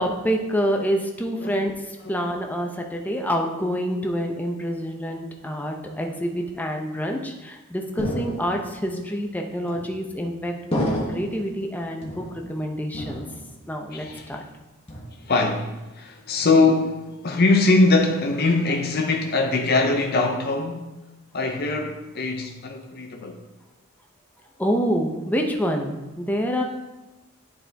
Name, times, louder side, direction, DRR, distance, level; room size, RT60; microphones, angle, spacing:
voice 1, 0.0-13.2 13.7-14.4 24.6-26.6, equal, 10° left, 0.6 m, -27 dB
sound 1, 8.0-8.8 9.7-10.2 10.7-11.5 12.0-12.6 12.9-13.7 14.0-14.4 14.9-15.5, equal, 25° left, 1.2 m, -31 dB
voice 2, 13.9-14.4 15.3-21.0 21.3-23.4, left 3 dB, 45° left, 0.6 m, -22 dB
10.0 x 4.3 x 3.4 m
head